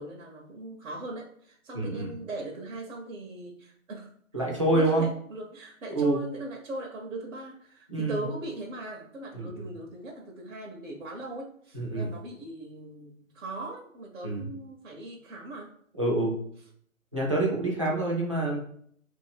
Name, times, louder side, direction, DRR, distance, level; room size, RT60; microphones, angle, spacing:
voice 1, 0.0-4.1 4.6-15.7, right 2 dB, 65° right, -1 dB, 0.8 m, -39 dB
voice 2, 1.7-2.1 4.3-5.1 5.9-6.2 7.9-8.3 9.3-9.7 11.7-12.1 14.2-14.5 16.0-16.3 17.1-18.6, right 2 dB, 25° right, -3 dB, 0.5 m, -27 dB
3.0 x 2.6 x 3.5 m, 0.64 s
figure-of-eight pair, 155°, 41 cm